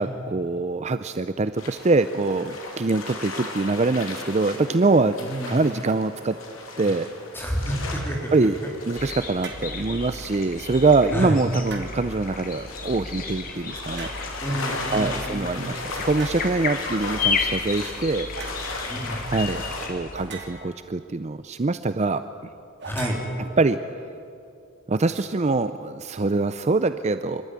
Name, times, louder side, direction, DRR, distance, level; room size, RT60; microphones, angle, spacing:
voice 1, 0.0-5.2 5.4-6.4 6.8-7.1 8.3-8.6 8.9-14.1 14.9-18.3 19.3-19.6 19.9-22.2 23.6-23.8 24.9-27.5, right 3 dB, 35° right, 11 dB, 0.5 m, -24 dB
sound 1, 1.6-19.9, left 3 dB, 80° left, 3.2 m, -37 dB
voice 2, 5.2-5.6 7.3-8.2 11.1-11.4 14.4-15.7 18.9-19.2 22.8-23.2, equal, 10° left, 0 dB, 3.3 m, -29 dB
sound 2, 9.0-20.3, left 4 dB, 45° left, 2.0 m, -33 dB
sound 3, 9.4-9.7 11.6-12.2 13.9-14.5 16.1-16.5 18.3-18.6 20.1-20.9 22.8-23.9, right 4 dB, 55° right, 3.0 m, -40 dB
27.5 x 13.0 x 9.7 m, 2.5 s
head